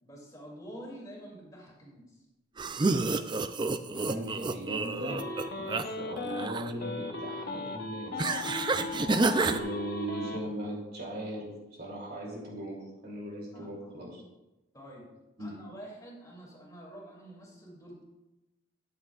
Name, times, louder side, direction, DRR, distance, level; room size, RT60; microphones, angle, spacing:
voice 1, 0.0-2.2 13.5-14.1 14.7-15.1 15.4-18.0, equal, 20° left, -2 dB, 2.6 m, -47 dB
sound 1, 2.6-5.8 6.2-6.7 8.2-9.6, right 3 dB, 25° right, 0.4 m, -29 dB
voice 2, 3.9-5.2 5.6-8.4 9.4-11.5 11.8-14.2 15.4-15.5, right 1 dB, 55° right, -2 dB, 2.9 m, -38 dB
sound 2, 5.1-6.5 6.8-10.4, left 3 dB, 50° left, 0.9 m, -37 dB
13.5 x 9.5 x 2.4 m, 1.0 s
head